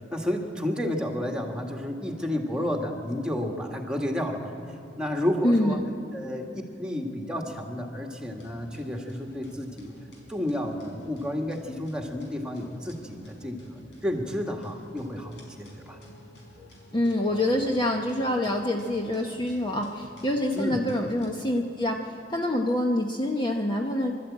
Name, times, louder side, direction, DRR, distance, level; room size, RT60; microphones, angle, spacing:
voice 1, 0.1-4.5 5.0-5.8 6.1-6.5 6.8-9.9 10.3-16.0 20.5-20.8, left 1 dB, 5° right, 2 dB, 1.9 m, -31 dB
voice 2, 5.4-5.8 16.9-24.1, left 1 dB, 25° left, 2 dB, 1.0 m, -26 dB
sound 1, 8.2-21.3, equal, 90° left, 4.7 m, -50 dB
24.0 x 13.0 x 8.7 m, 2.5 s
head